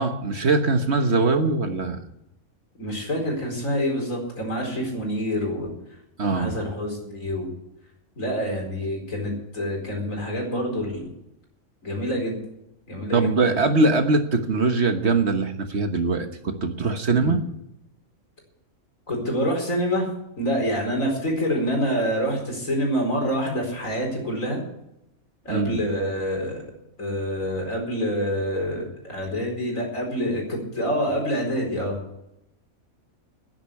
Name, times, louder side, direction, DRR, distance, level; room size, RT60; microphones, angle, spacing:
voice 1, 0.0-2.0 6.2-6.6 13.1-17.4 25.5-25.8, right 3 dB, 50° right, 6 dB, 1.5 m, -22 dB
voice 2, 2.8-5.7 6.3-7.5 8.2-11.1 11.8-12.4 12.9-13.3 17.1-17.4 19.1-20.1 20.4-24.6 25.4-26.7 27.0-32.0, equal, 65° left, 1 dB, 4.9 m, -26 dB
10.5 x 10.5 x 9.6 m, 0.82 s
omnidirectional pair, 1.5 m